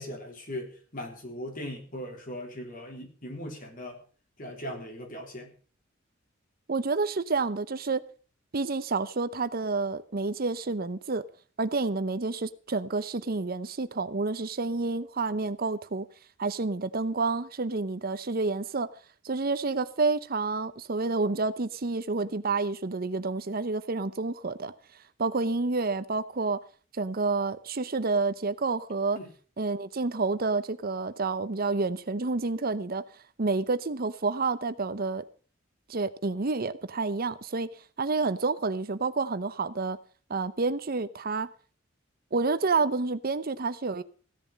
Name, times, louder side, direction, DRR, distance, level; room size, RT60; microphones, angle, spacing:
voice 1, 0.0-4.0 4.4-5.5 29.2-29.3, left 1 dB, 45° left, 3.6 m, -39 dB
voice 2, 6.7-8.0 8.5-11.2 11.6-16.1 16.4-18.9 19.2-24.7 25.2-26.6 26.9-29.2 29.6-33.0 33.4-35.2 35.9-37.7 38.0-40.0 40.3-41.5 42.3-44.0, right 3 dB, 50° right, 0.8 m, -29 dB
16.0 x 10.5 x 5.3 m
head